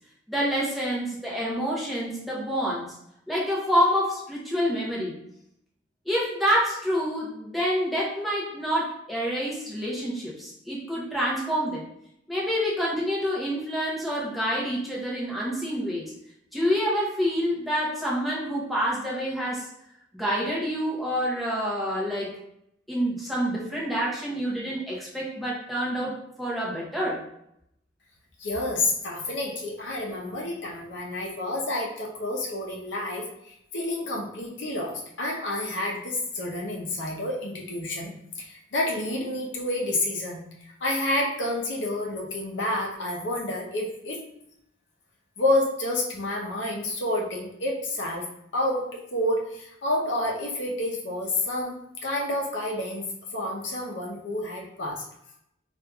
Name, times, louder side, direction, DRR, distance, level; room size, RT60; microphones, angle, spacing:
voice 1, 0.3-3.0 3.3-5.2 6.1-11.9 12.3-16.1 16.5-19.7 20.1-22.4 22.9-27.2, equal, ahead, -6 dB, 0.7 m, -27 dB
voice 2, 28.4-44.2 45.4-48.3 48.5-53.0 53.3-55.0, left 1 dB, 65° left, -2 dB, 0.7 m, -29 dB
4.4 x 2.5 x 2.2 m, 0.76 s
head